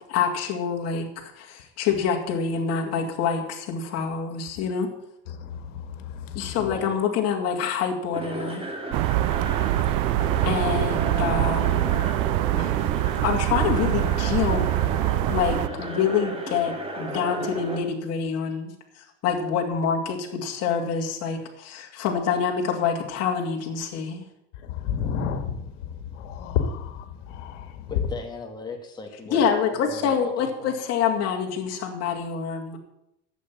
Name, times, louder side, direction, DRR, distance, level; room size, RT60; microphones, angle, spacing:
voice 1, 0.1-4.9 6.3-8.7 10.4-12.1 12.6-12.8 13.2-14.7 15.3-24.2 29.3-32.8, left 6 dB, 45° left, 2.5 m, -26 dB
voice 2, 5.3-6.5 9.9-10.5 13.1-13.2 24.7-27.8, left 7 dB, 80° left, 2.0 m, -32 dB
voice 3, 6.6-7.0 27.9-29.5 29.8-30.8, left 4 dB, 10° left, 1.9 m, -37 dB
sound 1, 8.1-17.8, right 2 dB, 15° right, 2.2 m, -33 dB
sound 2, 8.9-15.7, right 16 dB, 60° right, 0.6 m, -24 dB
11.5 x 7.9 x 9.0 m
cardioid pair, 140°, 36 cm